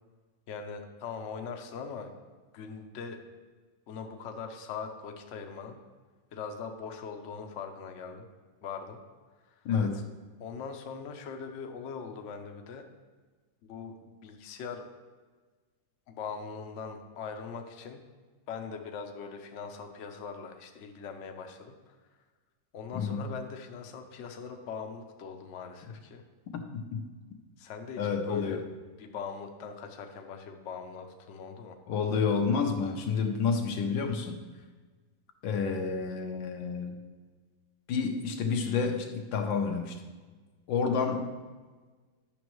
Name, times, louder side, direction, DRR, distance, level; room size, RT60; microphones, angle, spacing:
voice 1, 0.5-2.1 2.5-3.2 3.9-5.8 6.3-8.3 8.6-9.0 9.6-9.7 10.4-12.9 13.7-14.8 16.1-18.0 18.5-22.0 22.7-26.2 27.6-28.6 29.0-31.8, left 5 dB, 60° left, 4 dB, 0.7 m, -41 dB
voice 2, 9.6-10.0 22.9-23.2 26.5-27.0 28.0-28.6 31.9-34.4 35.4-37.0 37.9-40.0 40.7-41.4, left 5 dB, 85° left, 5 dB, 1.5 m, -29 dB
10.0 x 6.2 x 3.1 m, 1.4 s
omnidirectional pair, 2.0 m